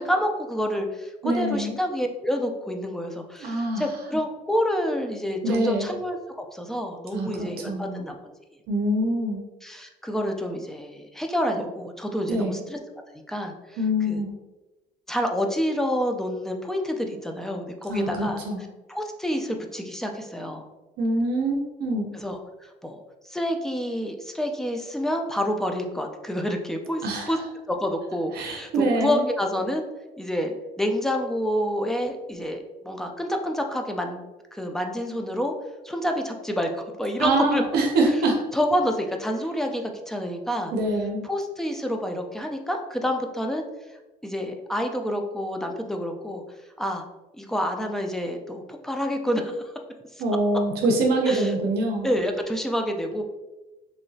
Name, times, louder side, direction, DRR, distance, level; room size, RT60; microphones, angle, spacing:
voice 1, 0.0-8.2 9.6-12.8 13.1-13.8 14.1-14.2 15.1-18.4 18.9-20.7 22.1-23.0 23.3-27.4 27.7-29.8 30.2-34.2 34.5-35.5 35.8-37.6 38.5-40.7 41.2-43.6 44.2-46.4 46.8-47.1 47.3-49.7 50.1-50.2 51.3-51.5 52.0-53.2, equal, ahead, 4 dB, 0.4 m, -28 dB
voice 2, 1.2-1.7 3.4-3.8 5.4-5.9 7.1-8.0 8.7-9.4 12.3-12.6 13.8-14.3 17.9-18.6 21.0-22.1 27.0-27.4 28.3-29.3 37.2-38.4 40.7-41.3 50.2-52.1, right 1 dB, 70° right, 1 dB, 0.6 m, -24 dB
3.2 x 2.7 x 2.6 m, 1.1 s
cardioid pair, 110°, 17 cm